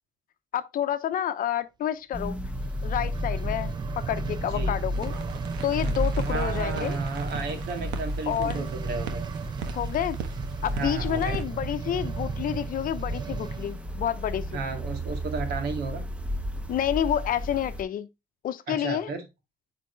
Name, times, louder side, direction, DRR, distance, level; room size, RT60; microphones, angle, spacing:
voice 1, 0.5-2.4 2.8-5.1 5.6-7.0 8.3-8.7 9.7-10.2 10.6-14.6 16.7-18.1 18.4-19.1, left 10 dB, 55° left, 0.8 m, -29 dB
sound 1, 2.1-17.8, equal, 5° right, 1.0 m, -33 dB
sound 2, 2.5-13.8 14.4-14.5, right 6 dB, 25° right, 0.4 m, -36 dB
sound 3, 4.9-11.4, right 7 dB, 85° right, 1.3 m, -41 dB
voice 2, 6.2-9.2 10.7-11.4 14.5-16.1 18.7-19.2, right 4 dB, 70° right, 2.1 m, -33 dB
9.0 x 4.4 x 3.2 m
cardioid pair, 110°, 17 cm